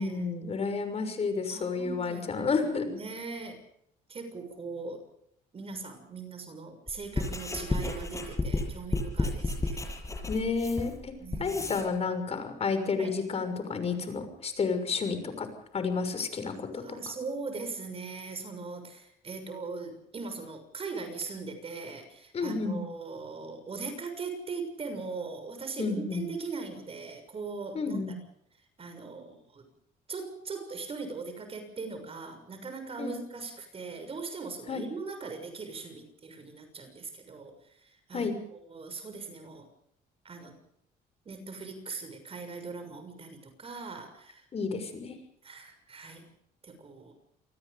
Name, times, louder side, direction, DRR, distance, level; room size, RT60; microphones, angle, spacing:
voice 1, 0.0-3.0 10.3-11.1 11.4-15.5 15.7-16.8 22.3-22.8 25.8-26.3 27.7-28.1 33.0-33.1 34.7-34.8 38.1-38.3 44.5-45.2, left 4 dB, 35° left, 9 dB, 6.3 m, -31 dB
voice 2, 1.5-3.6 4.1-5.0 5.5-9.9 11.2-11.6 13.0-13.2 16.4-28.1 28.8-29.7 30.1-38.3 38.7-39.7 40.2-40.6 41.2-44.5 45.4-46.3 46.6-47.1, right 4 dB, 35° right, 7 dB, 6.6 m, -40 dB
Writing, 6.9-11.9, left 2 dB, 20° left, 7.6 m, -32 dB
28.5 x 19.5 x 5.2 m, 0.73 s
cardioid pair, 110°, 17 cm